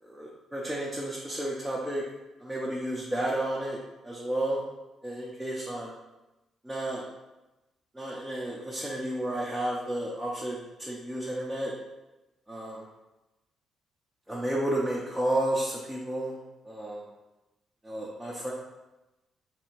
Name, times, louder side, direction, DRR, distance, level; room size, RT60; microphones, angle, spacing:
voice 1, 0.0-2.0 2.4-3.8 4.0-4.6 5.0-6.0 6.6-7.1 7.9-11.7 12.5-12.8 14.3-16.4 16.6-17.0 17.8-18.5, right 1 dB, 5° right, -4 dB, 0.5 m, -32 dB
4.2 x 2.7 x 4.4 m, 1.0 s
cardioid pair, 175°, 0 cm